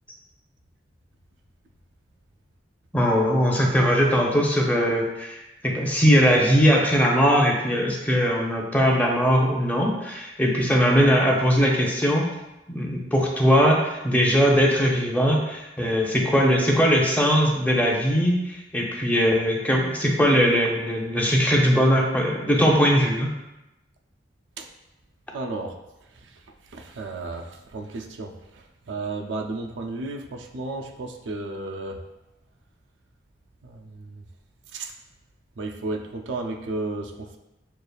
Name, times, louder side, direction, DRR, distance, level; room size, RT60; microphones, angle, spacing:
voice 1, 2.9-5.4 5.6-12.3 12.7-23.3, equal, 10° left, -1 dB, 0.6 m, -20 dB
voice 2, 25.3-25.7 26.1-26.4 26.7-32.0 33.6-34.2 34.7-34.9 35.6-37.4, right 2 dB, 85° right, 4 dB, 0.4 m, -33 dB
6.5 x 2.4 x 2.3 m, 0.94 s
head